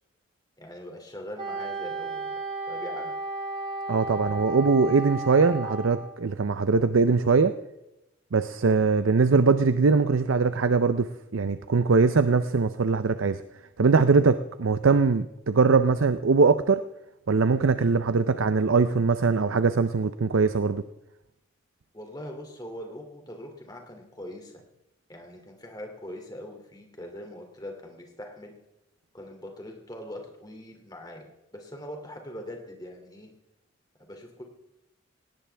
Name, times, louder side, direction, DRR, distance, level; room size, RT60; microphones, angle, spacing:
voice 1, 0.6-2.4 2.7-3.2 21.9-24.6 25.1-28.6 29.1-33.3 34.0-34.4, left 1 dB, 20° left, 3 dB, 2.6 m, -42 dB
Wind instrument woodwind instrument, 1.4-6.2, right 2 dB, 25° right, 1.8 m, -34 dB
voice 2, 3.9-7.5 8.3-13.4 13.8-16.8 17.3-20.8, right 4 dB, 80° right, 12 dB, 0.6 m, -22 dB
18.0 x 18.0 x 3.4 m, 0.93 s
head